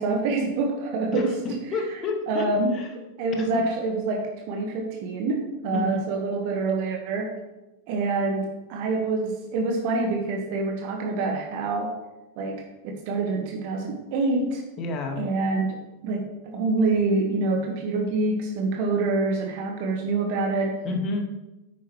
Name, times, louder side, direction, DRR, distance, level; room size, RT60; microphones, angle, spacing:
voice 1, 0.0-1.4 1.7-2.0 2.3-2.7 3.2-7.3 7.9-11.9 12.4-14.6 15.2-15.8 16.0-20.8, right 3 dB, 45° right, 2 dB, 1.4 m, -26 dB
voice 2, 1.1-2.5 2.7-2.9 3.5-3.6 5.7-6.0 14.8-15.2 20.8-21.2, left 3 dB, 35° left, 3 dB, 1.8 m, -29 dB
9.8 x 9.2 x 3.2 m, 1.0 s
figure-of-eight pair, 90°, 0 cm